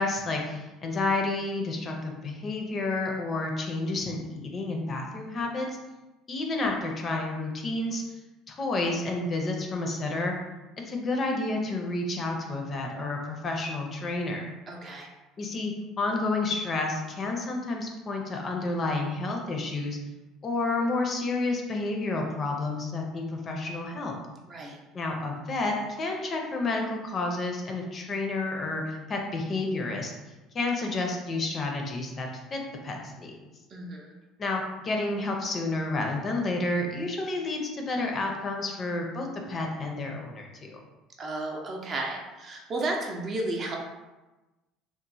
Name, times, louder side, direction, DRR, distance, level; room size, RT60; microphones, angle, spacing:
voice 1, 0.0-5.7 6.3-8.0 8.5-10.4 10.9-14.5 15.4-20.0 20.4-24.1 24.9-30.1 30.5-33.3 34.4-40.8, left 2 dB, 35° left, 1 dB, 0.5 m, -30 dB
voice 2, 14.7-15.1 24.5-24.8 33.7-34.1 41.2-43.8, right 2 dB, 40° right, 0 dB, 0.5 m, -33 dB
3.0 x 2.0 x 2.6 m, 1.1 s
supercardioid pair, 110°, 0 cm